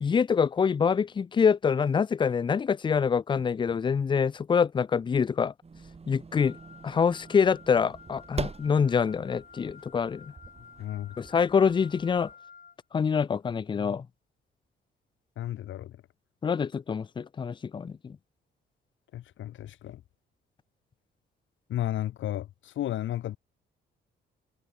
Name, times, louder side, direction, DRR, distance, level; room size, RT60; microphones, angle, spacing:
voice 1, 0.0-5.5 6.1-6.6 6.8-10.3 11.2-12.3 12.9-14.1 16.4-18.2, left 6 dB, 25° left, 0.4 m, -25 dB
sound 1, 5.6-12.3, right 4 dB, 30° right, 7.2 m, -43 dB
Wind instrument woodwind instrument, 6.3-12.8, left 6 dB, 40° left, 3.9 m, -52 dB
voice 2, 10.8-11.1 15.4-16.0 19.1-20.0 21.7-23.4, left 12 dB, 75° left, 2.3 m, -33 dB
cardioid pair, 90°, 20 cm